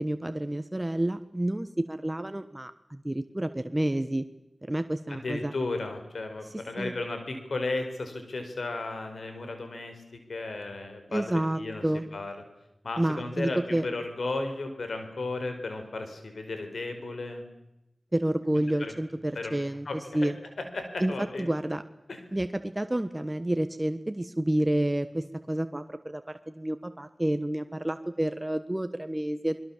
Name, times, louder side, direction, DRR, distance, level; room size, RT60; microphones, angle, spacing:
voice 1, 0.0-4.2 4.7-5.5 6.8-6.9 11.1-12.0 13.0-13.9 18.1-20.3 21.0-21.1 21.4-21.8 22.3-29.6, right 1 dB, 20° right, 9 dB, 1.3 m, -29 dB
voice 2, 5.1-11.8 12.1-12.3 12.8-17.4 18.8-18.9 19.3-19.6 19.8-20.3 20.7-21.5 22.1-22.2, left 2 dB, 80° left, 6 dB, 5.0 m, -34 dB
28.0 x 21.5 x 7.4 m, 0.88 s
cardioid pair, 40°, 0 cm